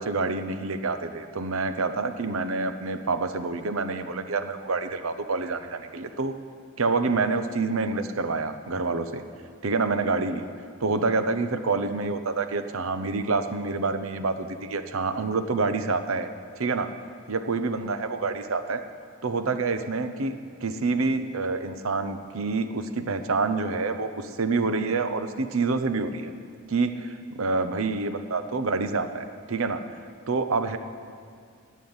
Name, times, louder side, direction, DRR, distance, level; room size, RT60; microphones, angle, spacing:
voice 1, 0.0-6.3 6.8-9.2 9.6-10.5 10.8-16.3 16.6-16.9 17.3-18.8 19.2-20.3 20.6-26.3 26.7-29.9 30.3-30.8, right 3 dB, 80° right, 9 dB, 0.8 m, -27 dB
11.0 x 8.4 x 9.6 m, 2.2 s
head